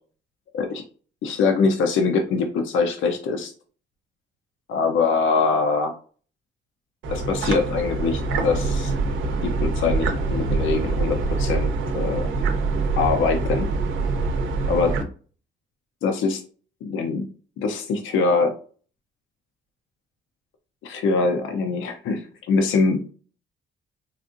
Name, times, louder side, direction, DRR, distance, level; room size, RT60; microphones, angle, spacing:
voice 1, 1.2-3.5 4.7-6.0 7.1-8.9 9.4-12.3 13.0-13.7 14.7-14.9 16.0-16.4 16.8-17.3 17.6-18.5 20.8-23.0, left 4 dB, 80° left, 4 dB, 0.6 m, -23 dB
sound 1, 7.0-15.0, right 3 dB, 75° right, 0.7 m, -24 dB
4.0 x 2.5 x 2.5 m, 0.40 s
cardioid pair, 90°, 20 cm